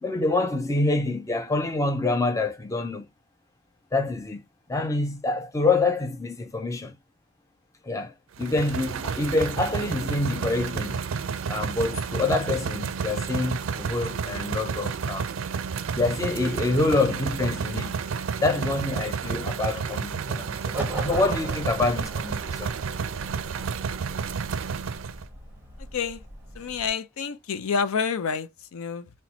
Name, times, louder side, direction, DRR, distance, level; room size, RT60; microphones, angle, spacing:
voice 1, 0.0-3.1 3.9-4.4 4.7-7.0 7.8-11.0 11.5-15.3 15.9-17.9 18.4-22.7, left 2 dB, 15° left, 0.5 m, -26 dB
sound 1, 8.4-25.3, right 6 dB, 65° right, 0.4 m, -31 dB
sound 2, 20.7-26.9, right 2 dB, 10° right, 0.8 m, -39 dB
voice 2, 25.8-26.2 26.5-29.1, left 6 dB, 80° left, 0.5 m, -29 dB
4.1 x 2.2 x 2.8 m
head